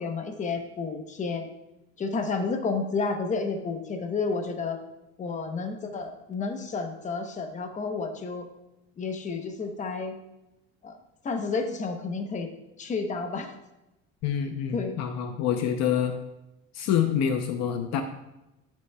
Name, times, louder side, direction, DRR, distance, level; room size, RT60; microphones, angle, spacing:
voice 1, 0.0-1.5 2.0-4.8 5.2-8.5 9.0-10.2 10.8-11.0 11.2-12.5 12.8-13.5 14.7-15.0, left 4 dB, 25° left, 5 dB, 0.9 m, -31 dB
voice 2, 14.2-16.2 16.7-18.0, left 8 dB, 55° left, 6 dB, 0.7 m, -26 dB
11.0 x 8.3 x 2.3 m, 0.94 s
cardioid pair, 145°, 31 cm